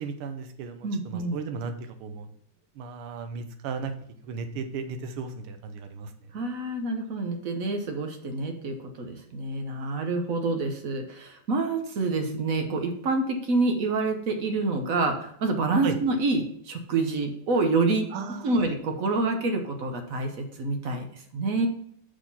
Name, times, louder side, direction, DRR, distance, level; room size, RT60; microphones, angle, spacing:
voice 1, 0.0-2.3 2.8-3.9 4.2-6.1 15.8-16.0 18.1-18.7, right 5 dB, 80° right, 8 dB, 1.6 m, -35 dB
voice 2, 0.8-1.4 6.3-18.1 18.4-21.7, right 3 dB, 55° right, 5 dB, 1.0 m, -27 dB
6.1 x 4.2 x 5.5 m, 0.65 s
omnidirectional pair, 2.3 m